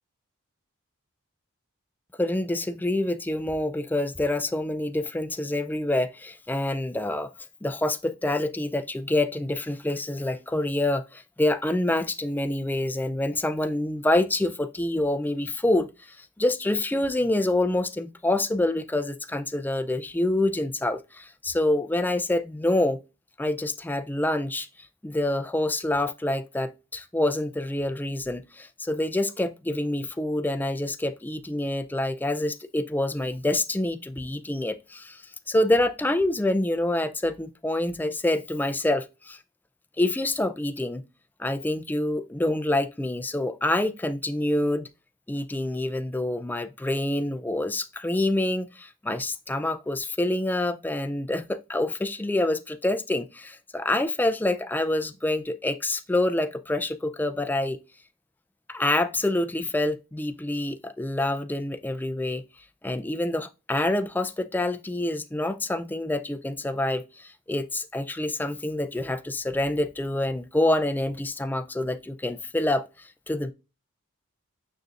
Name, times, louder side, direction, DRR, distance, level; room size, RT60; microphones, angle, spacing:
voice 1, 2.2-7.3 7.6-23.0 23.4-24.7 25.0-39.4 40.0-41.0 41.4-44.9 45.3-57.8 58.7-62.4 62.8-73.5, left 1 dB, 10° left, 0.4 m, -27 dB
6.6 x 6.4 x 2.4 m
head